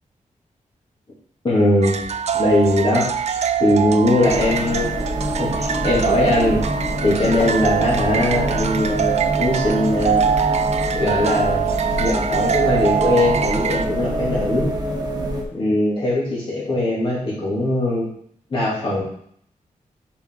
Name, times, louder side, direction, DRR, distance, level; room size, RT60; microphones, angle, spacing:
voice 1, 1.4-6.6 7.0-10.2 11.0-11.7 12.0-14.7 15.5-18.0 18.5-19.0, left 1 dB, 40° left, -7 dB, 2.4 m, -20 dB
sound 1, 1.8-13.9, right 8 dB, 50° right, 0.4 m, -24 dB
sound 2, 4.2-15.4, right 1 dB, 30° right, 1.1 m, -25 dB
6.8 x 5.2 x 3.8 m, 0.65 s
wide cardioid pair, 155°, 14 cm